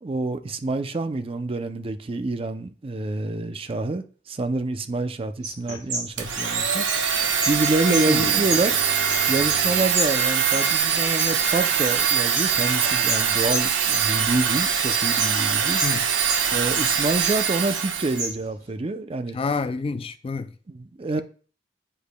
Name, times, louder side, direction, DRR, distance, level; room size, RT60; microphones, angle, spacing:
voice 1, 0.0-6.8 7.5-8.8 9.3-15.8 16.5-19.4 20.7-21.2, right 2 dB, 30° right, 0.5 m, -27 dB
sound 1, 5.4-9.7 9.9-12.0 12.3-14.5 14.9-16.0 16.2-17.4 17.7-18.6, right 2 dB, 60° right, 3.6 m, -31 dB
sound 2, 5.7-5.8 8.2-10.0 10.5-13.9, left 1 dB, 90° left, 1.2 m, -43 dB
Domestic sounds home sounds, 6.2-18.3, right 7 dB, 85° right, 0.8 m, -23 dB
voice 2, 7.9-8.4 15.8-16.0 19.3-20.5, left 4 dB, 30° left, 0.3 m, -28 dB
9.9 x 5.0 x 2.2 m
head